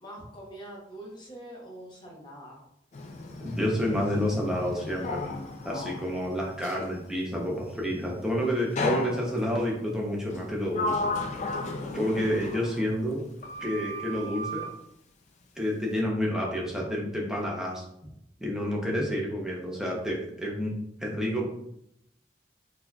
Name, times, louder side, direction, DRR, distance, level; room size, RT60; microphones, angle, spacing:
voice 1, 0.0-2.6 12.4-12.6, right 1 dB, 25° left, -3 dB, 0.9 m, -44 dB
Sliding door, 2.9-6.9 8.8-9.6 10.3-13.2 13.4-14.7, left 2 dB, 40° left, 0.3 m, -34 dB
voice 2, 3.4-5.2 5.6-11.1 11.9-13.2 13.6-14.6 15.6-17.8 18.4-20.7 21.0-21.5, equal, 5° right, -3 dB, 0.6 m, -29 dB
4.0 x 2.7 x 2.3 m, 0.77 s
head